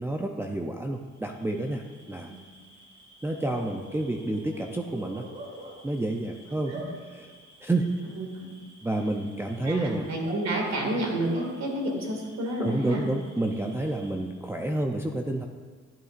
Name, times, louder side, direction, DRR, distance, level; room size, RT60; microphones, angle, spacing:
voice 1, 0.0-2.3 3.2-5.3 5.8-6.7 7.1-7.3 7.6-7.9 8.8-10.1 12.6-15.5, right 2 dB, 10° right, 1 dB, 0.5 m, -29 dB
Bark / Cricket, 1.2-14.5, right 1 dB, 35° right, 2.8 m, -47 dB
voice 2, 6.7-7.0 8.2-8.6 9.6-13.1, right 1 dB, 60° right, 0 dB, 2.3 m, -30 dB
12.0 x 8.2 x 2.5 m, 1.5 s
cardioid pair, 90°, 30 cm